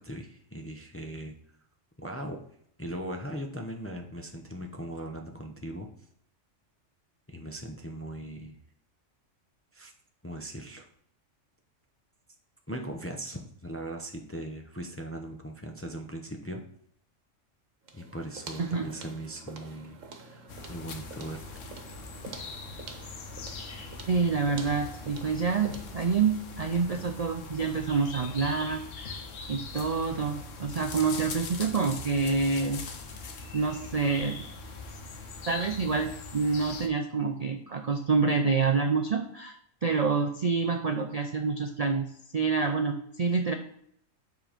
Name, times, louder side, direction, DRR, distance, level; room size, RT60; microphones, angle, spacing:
voice 1, 0.0-1.3 2.0-2.4 2.8-5.9 7.3-8.6 9.7-9.9 10.2-10.9 12.7-16.6 17.9-21.7, right 1 dB, 15° left, 3 dB, 0.6 m, -39 dB
sound 1, 17.8-26.1, right 4 dB, 85° right, 1.3 m, -47 dB
sound 2, 20.5-36.9, left 4 dB, 75° left, 1.3 m, -42 dB
voice 2, 23.6-29.2 29.5-32.8 33.5-34.4 35.5-39.5 39.8-42.1 42.3-43.5, right 4 dB, 45° right, 4 dB, 0.5 m, -27 dB
7.5 x 4.0 x 5.1 m, 0.69 s
omnidirectional pair, 1.3 m